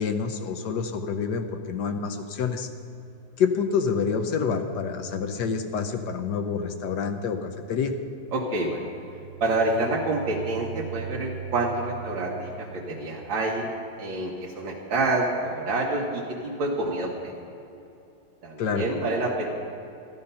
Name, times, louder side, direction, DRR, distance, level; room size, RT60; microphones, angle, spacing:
voice 1, 0.0-2.7 3.4-7.9 18.6-18.8, left 6 dB, 65° left, 7 dB, 1.3 m, -27 dB
voice 2, 8.3-8.9 9.4-13.7 14.0-17.3 18.4-19.5, right 2 dB, 90° right, -3 dB, 2.1 m, -27 dB
sound 1, 8.8-13.4, right 8 dB, 55° right, 0.9 m, -39 dB
13.5 x 12.0 x 5.5 m, 2.7 s
omnidirectional pair, 2.0 m